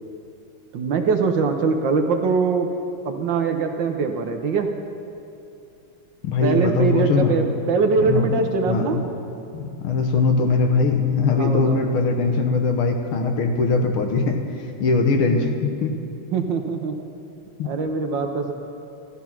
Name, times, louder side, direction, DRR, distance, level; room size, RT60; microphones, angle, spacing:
voice 1, 0.7-2.7 3.0-4.7 6.4-9.0 11.3-11.8 15.3-15.4 16.3-16.9 17.6-18.5, right 4 dB, 65° right, 5 dB, 1.5 m, -22 dB
voice 2, 6.2-7.4 8.0-8.4 8.7-9.0 9.5-16.0 17.6-17.7, left 4 dB, 75° left, 4 dB, 2.0 m, -21 dB
14.5 x 12.5 x 5.9 m, 2.7 s
omnidirectional pair, 2.4 m